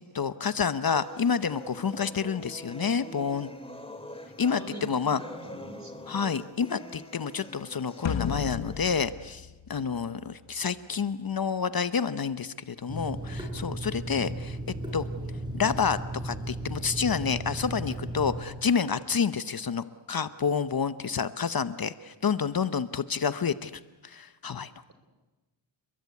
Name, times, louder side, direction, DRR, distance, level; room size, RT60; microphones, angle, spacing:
voice 1, 0.1-3.5 4.4-5.2 6.1-14.6 14.9-15.1 15.5-23.7 24.0-24.7, left 6 dB, 50° left, 13 dB, 0.9 m, -29 dB
sound 1, 0.9-8.9, left 1 dB, 10° left, 2.4 m, -45 dB
voice 2, 4.5-6.2, right 1 dB, 35° right, 8 dB, 4.2 m, -44 dB
sound 2, 8.0-10.5, left 8 dB, 70° left, 1.1 m, -34 dB
Water tap faucet / Sink (filling or washing), 12.9-18.4, right 1 dB, 10° right, 6.3 m, -35 dB
30.0 x 22.0 x 8.4 m, 1.1 s
wide cardioid pair, 105°, 46 cm